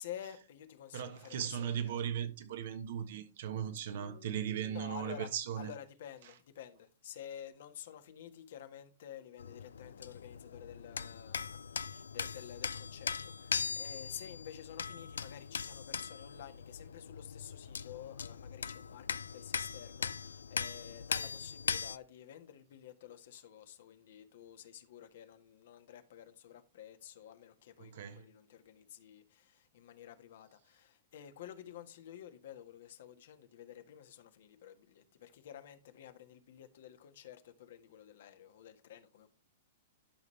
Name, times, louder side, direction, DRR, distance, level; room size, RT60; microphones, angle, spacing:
voice 1, 0.0-2.0 4.0-39.3, left 10 dB, 70° left, 1.4 m, -51 dB
voice 2, 0.9-5.7 27.8-28.2, right 9 dB, 65° right, 1.3 m, -38 dB
sound 1, 9.4-22.0, left 6 dB, 90° left, 0.4 m, -40 dB
12.0 x 5.4 x 3.2 m
hypercardioid pair, 125°, 0 cm